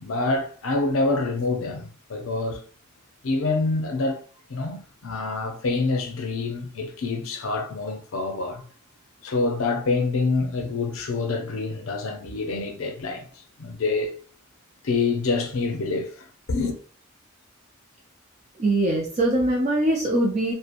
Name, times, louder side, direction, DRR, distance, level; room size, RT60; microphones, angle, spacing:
voice 1, 0.0-2.6 3.2-4.2 4.5-8.6 9.2-13.3 13.6-14.1 14.8-16.2 16.5-16.7, left 3 dB, 80° left, 0.6 m, -26 dB
voice 2, 18.6-20.5, right 1 dB, 30° right, 0.4 m, -22 dB
2.7 x 2.1 x 2.5 m
head